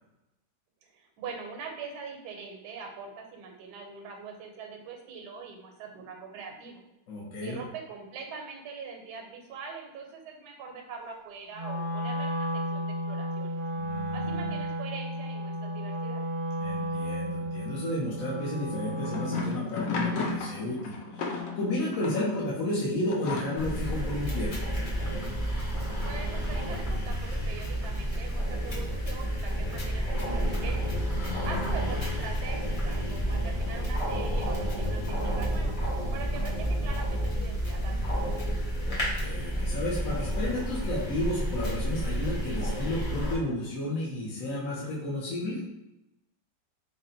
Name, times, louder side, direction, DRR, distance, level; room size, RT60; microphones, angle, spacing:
voice 1, 0.8-6.8 7.4-13.6 14.1-16.2 26.0-30.9 31.4-35.7 36.1-38.1, right 5 dB, 75° right, 2 dB, 1.2 m, -42 dB
voice 2, 7.1-7.6 13.7-14.5 16.6-24.8 31.1-31.7 38.7-45.6, left 1 dB, 60° left, -5 dB, 1.1 m, -32 dB
Wind instrument woodwind instrument, 11.5-19.6, equal, 55° right, 0.7 m, -33 dB
sound 1, 18.8-22.3 23.1-23.9, left 3 dB, 85° left, 1.3 m, -33 dB
sound 2, 23.5-43.4, equal, 25° left, 0.8 m, -30 dB
4.0 x 2.1 x 3.8 m, 0.92 s
omnidirectional pair, 1.9 m